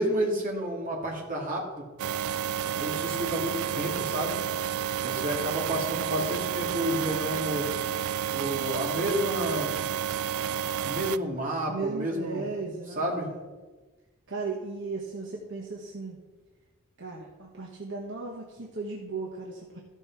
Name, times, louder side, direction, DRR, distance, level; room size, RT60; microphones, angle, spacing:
voice 1, 0.0-1.8 2.8-4.4 4.7-7.7 8.3-9.8 10.8-12.5 12.9-13.3, right 1 dB, 40° right, -1 dB, 2.4 m, -30 dB
sound 1, 2.0-11.2, right 9 dB, 80° right, 0.3 m, -30 dB
voice 2, 11.7-13.4 14.3-16.2 17.0-19.8, right 4 dB, 60° right, -2 dB, 1.3 m, -36 dB
14.0 x 5.3 x 5.9 m, 1.3 s
head